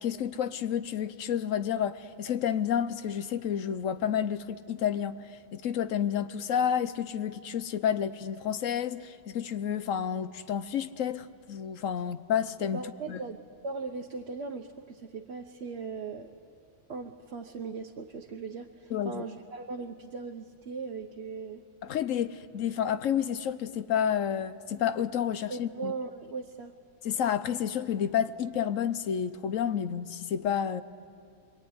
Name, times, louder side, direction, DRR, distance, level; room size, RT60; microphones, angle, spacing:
voice 1, 0.0-12.8 13.1-13.2 18.9-19.2 21.8-25.9 27.0-30.8, left 9 dB, 80° left, 1.2 m, -30 dB
voice 2, 12.7-16.3 16.9-21.6 25.5-26.7, right 4 dB, 55° right, 1.1 m, -39 dB
26.5 x 22.0 x 9.6 m
omnidirectional pair, 1.3 m